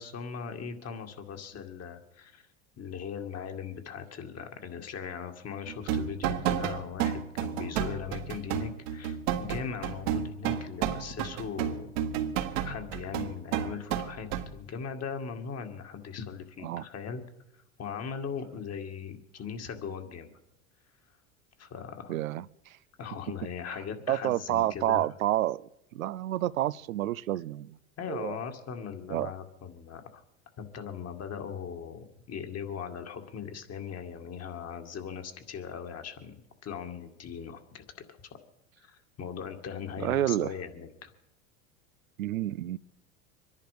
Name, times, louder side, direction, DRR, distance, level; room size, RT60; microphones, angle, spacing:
voice 1, 0.0-2.4 2.8-12.0 12.6-17.2 17.8-20.3 21.6-22.2 23.0-25.1 28.0-30.2 30.6-37.8 38.3-38.4 38.8-41.1, left 7 dB, 40° left, 2.3 m, -39 dB
sound 1, 5.7-14.5, right 9 dB, 65° right, 1.6 m, -31 dB
voice 2, 22.1-22.8 23.7-23.8 24.1-27.8 28.1-28.4 29.1-29.3 40.0-40.5 42.2-42.8, right 14 dB, 85° right, 0.6 m, -29 dB
25.0 x 10.5 x 5.1 m
hypercardioid pair, 85°, 40 cm